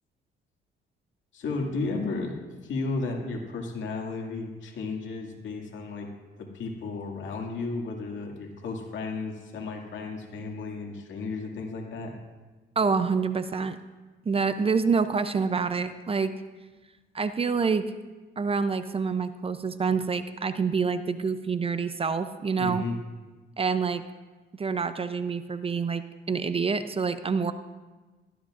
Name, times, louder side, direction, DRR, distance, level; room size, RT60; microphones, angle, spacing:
voice 1, 1.3-2.3 2.6-6.1 6.4-12.1 22.6-23.0, left 3 dB, 70° left, 0 dB, 2.2 m, -33 dB
voice 2, 12.8-13.8 14.3-16.4 17.1-17.9 18.4-22.8 23.6-24.0 24.6-27.5, right 5 dB, 30° right, 11 dB, 0.5 m, -27 dB
17.0 x 13.0 x 2.5 m, 1.3 s
cardioid pair, 90°, 20 cm